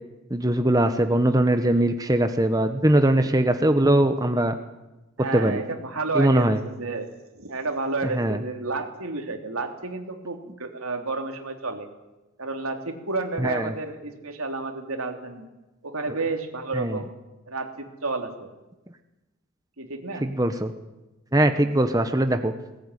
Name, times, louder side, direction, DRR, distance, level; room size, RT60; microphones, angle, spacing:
voice 1, 0.3-4.5 5.3-5.6 6.1-6.6 8.1-8.4 13.4-13.7 16.7-17.0 20.2-20.7 21.3-22.5, right 1 dB, 15° right, 7 dB, 1.0 m, -21 dB
voice 2, 5.2-7.1 7.3-11.9 12.4-15.5 15.8-17.1 17.5-18.5 19.8-20.3, right 3 dB, 75° right, 4 dB, 3.3 m, -31 dB
20.5 x 18.5 x 9.9 m, 1.1 s
head